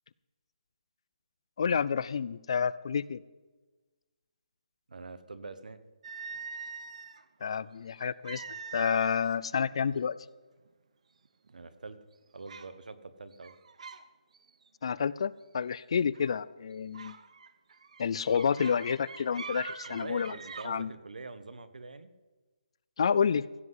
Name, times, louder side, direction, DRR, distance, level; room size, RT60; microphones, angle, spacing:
voice 1, 1.6-3.2 7.4-8.4 8.7-10.1 14.8-17.2 18.0-20.3 20.6-20.9 23.0-23.5, left 6 dB, 45° left, 20 dB, 0.4 m, -29 dB
voice 2, 4.9-5.8 11.5-12.0 12.3-13.5 19.9-22.1, right 3 dB, 85° right, 12 dB, 1.2 m, -44 dB
sound 1, 6.0-7.2 8.2-9.4 9.7-10.0 10.7-10.8 11.2-11.7 12.5-12.7 13.3-14.0 14.3-14.7 16.1-16.4 16.9-20.7, right 5 dB, 60° right, 0.9 m, -43 dB
15.5 x 5.7 x 8.0 m, 1.2 s
hypercardioid pair, 170°, 4 cm